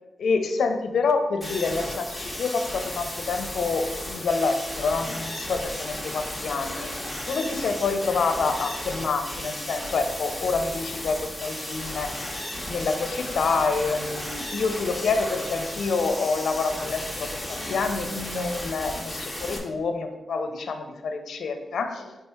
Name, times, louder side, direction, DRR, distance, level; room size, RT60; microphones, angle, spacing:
voice 1, 0.2-12.2 12.6-22.2, left 4 dB, 80° left, 7 dB, 0.7 m, -27 dB
sound 1, 1.4-19.6, left 1 dB, ahead, 1.4 m, -34 dB
4.9 x 4.5 x 4.5 m, 1.1 s
wide cardioid pair, 130°, 0 cm